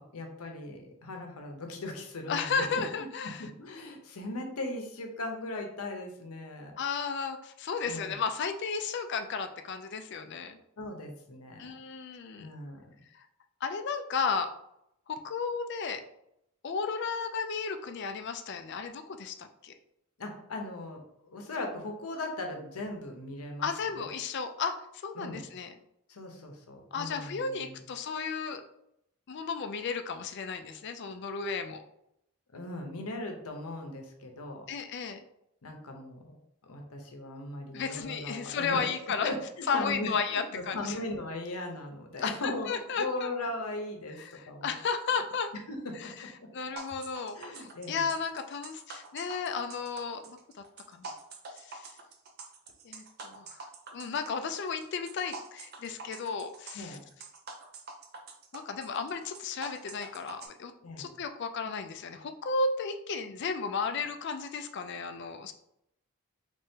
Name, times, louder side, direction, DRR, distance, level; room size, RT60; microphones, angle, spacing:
voice 1, 0.0-2.5 3.0-6.7 7.9-8.2 10.8-11.7 12.4-12.9 20.2-23.7 23.9-24.1 25.2-25.5 26.1-27.8 32.5-34.7 35.6-36.4 36.6-38.9 39.2-39.4 39.7-42.7 43.0-44.2 44.5-44.8 45.7-45.8 46.0-46.1 47.4-48.1 56.7-57.0 60.8-61.1, left 2 dB, 85° left, 3 dB, 0.7 m, -38 dB
voice 2, 2.3-3.4 6.8-10.6 11.6-12.5 13.1-13.3 13.6-14.5 15.1-16.0 16.6-19.7 23.6-25.7 26.9-28.6 29.3-31.8 34.7-35.3 37.7-39.3 39.7-41.0 42.2-43.3 44.2-45.5 45.9-51.1 51.5-51.9 52.8-53.6 53.9-57.0 58.5-60.7 61.0-65.5, left 5 dB, 50° left, 8 dB, 0.4 m, -34 dB
sound 1, 46.8-60.5, right 3 dB, 45° right, 0.5 m, -46 dB
3.5 x 3.3 x 2.8 m, 0.78 s
head